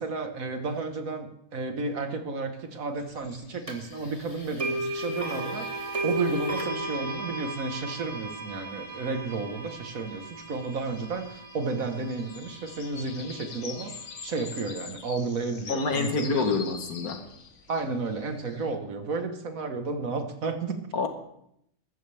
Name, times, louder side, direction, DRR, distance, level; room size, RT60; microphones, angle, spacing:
voice 1, 0.0-16.5 17.7-20.8, right 3 dB, 70° right, 6 dB, 1.7 m, -32 dB
sound 1, 3.0-18.8, left 6 dB, 55° left, 1.3 m, -47 dB
sound 2, 3.7-3.8 4.6-12.6, right 2 dB, 25° right, 1.5 m, -35 dB
voice 2, 15.7-17.2 20.9-21.1, left 4 dB, 85° left, 6 dB, 1.8 m, -27 dB
14.5 x 13.0 x 3.4 m, 0.75 s
omnidirectional pair, 1.5 m